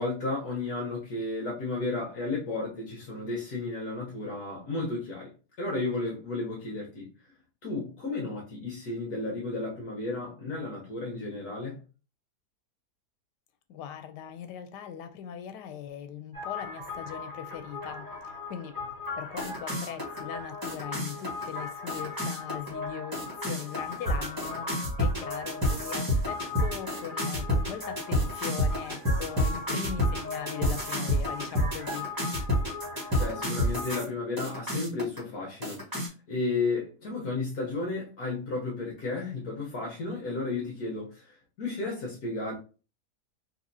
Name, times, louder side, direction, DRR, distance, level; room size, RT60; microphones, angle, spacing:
voice 1, 0.0-5.3 5.6-7.1 7.6-11.8 33.2-35.8 36.3-42.6, left 3 dB, 65° left, 1.4 m, -33 dB
voice 2, 13.7-18.1 18.5-18.7 19.2-24.7 25.0-32.1, left 9 dB, 90° left, 1.2 m, -40 dB
sound 1, 16.3-34.1 34.4-35.2 35.6-36.1, left 1 dB, 15° right, 1.0 m, -31 dB
4.1 x 2.6 x 2.7 m
omnidirectional pair, 1.8 m